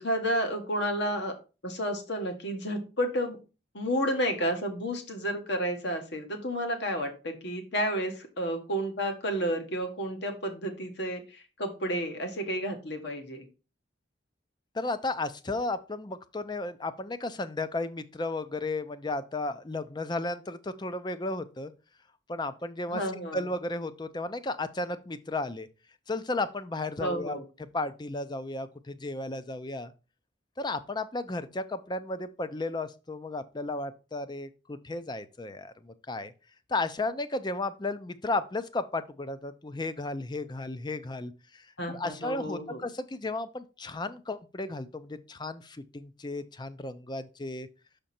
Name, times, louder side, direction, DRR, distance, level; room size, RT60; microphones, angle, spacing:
voice 1, 0.0-1.3 1.6-3.4 3.7-13.5 22.9-23.4 27.0-27.4 41.8-42.8, equal, 60° left, 1.5 m, -31 dB
voice 2, 14.7-21.7 22.3-23.0 23.3-25.7 26.1-27.4 27.7-29.9 30.6-36.3 36.7-47.7, left 2 dB, 20° left, 0.5 m, -34 dB
6.3 x 5.1 x 4.3 m
head